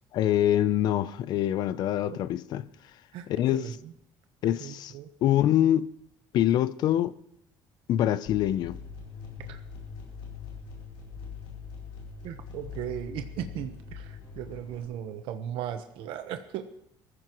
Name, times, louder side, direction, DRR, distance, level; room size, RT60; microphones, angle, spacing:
voice 1, 0.1-2.7 3.3-3.7 4.4-4.9 5.2-5.9 6.3-7.2 7.9-8.8, left 12 dB, 50° left, 0.5 m, -25 dB
voice 2, 3.1-3.9 4.4-5.1 9.4-9.6 12.2-16.7, right 10 dB, 75° right, 1.1 m, -37 dB
sound 1, 8.3-14.8, left 6 dB, 65° left, 5.1 m, -42 dB
22.5 x 15.0 x 3.1 m
cardioid pair, 175°, 9 cm